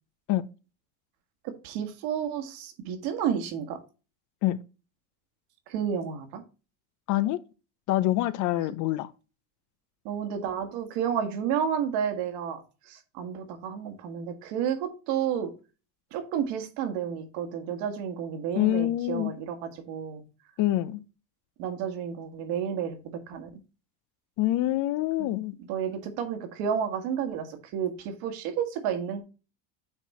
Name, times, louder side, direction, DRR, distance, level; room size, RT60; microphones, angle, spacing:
voice 1, 1.4-3.8 5.7-6.4 10.1-15.5 16.1-20.2 21.6-23.5 25.2-25.4 25.7-29.2, right 8 dB, 70° right, 1.9 m, -31 dB
voice 2, 7.1-7.4 7.9-9.1 18.6-19.3 20.6-21.0 24.4-25.5, left 15 dB, 50° left, 0.6 m, -25 dB
8.9 x 4.0 x 4.3 m
supercardioid pair, 135°, 40 cm